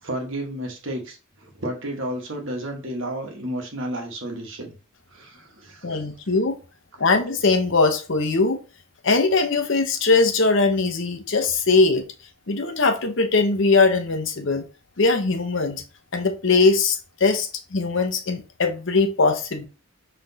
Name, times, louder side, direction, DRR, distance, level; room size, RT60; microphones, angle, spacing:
voice 1, 0.0-4.8 5.1-6.1, right 1 dB, 60° right, 1.4 m, -32 dB
voice 2, 5.8-6.6 7.0-8.6 9.0-12.0 12.5-14.6 15.0-15.8 16.1-19.7, left 3 dB, 60° left, 0.8 m, -21 dB
5.8 x 3.3 x 2.7 m
head